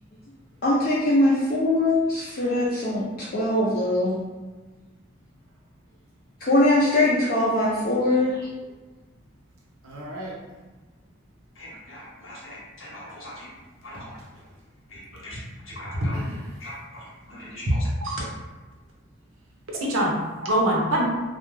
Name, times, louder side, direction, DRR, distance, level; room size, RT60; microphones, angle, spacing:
voice 1, 0.6-4.2 6.4-8.5, left 1 dB, 45° left, -8 dB, 0.4 m, -22 dB
voice 2, 9.8-10.4 16.0-16.5 17.7-17.8 18.0-18.3 19.9-20.1 20.4-21.1, right 1 dB, 80° right, -3 dB, 0.7 m, -24 dB
voice 3, 11.5-13.5 13.8-14.1 14.9-15.4 15.6-16.2 16.6-17.9, left 1 dB, 80° left, -6 dB, 0.9 m, -41 dB
2.3 x 2.1 x 3.1 m, 1.3 s
head